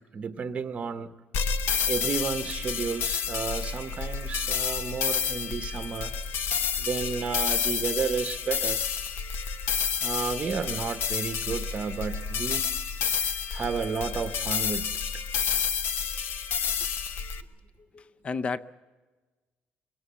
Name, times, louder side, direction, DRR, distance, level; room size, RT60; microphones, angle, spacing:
voice 1, 0.1-1.1 1.9-6.1 6.8-8.8 10.0-12.7 13.5-14.9, right 5 dB, 30° right, 8 dB, 0.8 m, -32 dB
sound 1, 1.3-17.4, left 6 dB, 65° left, 1.0 m, -29 dB
voice 2, 17.8-18.6, left 4 dB, 30° left, 15 dB, 0.6 m, -33 dB
23.0 x 17.0 x 8.1 m, 1.3 s
cardioid pair, 160°, 4 cm